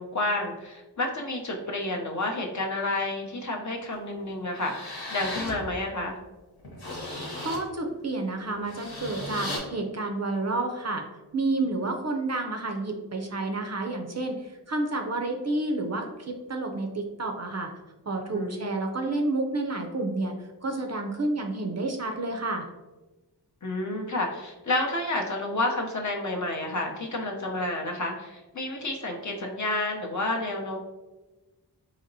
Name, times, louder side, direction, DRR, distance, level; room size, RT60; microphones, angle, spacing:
voice 1, 0.0-6.2 11.6-11.7 18.3-18.7 23.6-30.8, left 2 dB, 45° left, 0 dB, 0.6 m, -30 dB
sound 1, 3.9-4.0 4.5-5.6 6.1-6.2 6.6-7.7 8.5-9.6, left 1 dB, 65° left, 1.1 m, -36 dB
voice 2, 7.4-11.1 11.3-17.7 18.1-22.7, right 2 dB, 40° right, 3 dB, 0.5 m, -30 dB
4.1 x 2.9 x 2.6 m, 1.1 s
wide cardioid pair, 70°, 41 cm